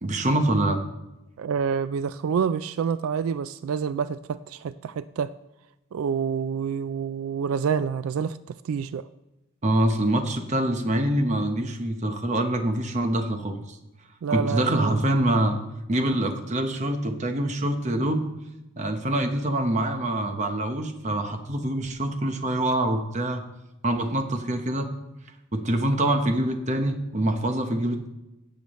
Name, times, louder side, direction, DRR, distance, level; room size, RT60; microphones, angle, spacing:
voice 1, 0.0-0.8 9.6-13.8 14.3-15.6 15.9-18.3 18.8-23.4 23.8-24.9 25.5-28.1, right 1 dB, 35° right, 6 dB, 1.0 m, -25 dB
voice 2, 1.4-5.3 5.9-9.1 14.2-15.0, right 6 dB, 85° right, 14 dB, 0.3 m, -28 dB
17.0 x 7.1 x 3.1 m, 0.96 s
head